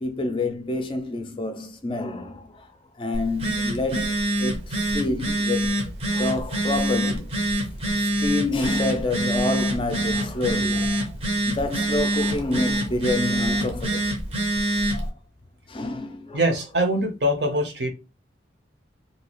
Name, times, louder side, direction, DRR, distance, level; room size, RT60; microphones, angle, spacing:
voice 1, 0.0-2.7 3.0-5.8 6.1-7.2 8.0-11.1 11.5-14.2 14.9-15.1 15.7-16.5, left 2 dB, 25° left, 0.4 m, -28 dB
Telephone, 3.1-15.1, right 1 dB, 30° right, 0.6 m, -25 dB
voice 2, 16.3-17.9, right 1 dB, 60° right, 0.8 m, -23 dB
2.7 x 2.3 x 3.0 m
head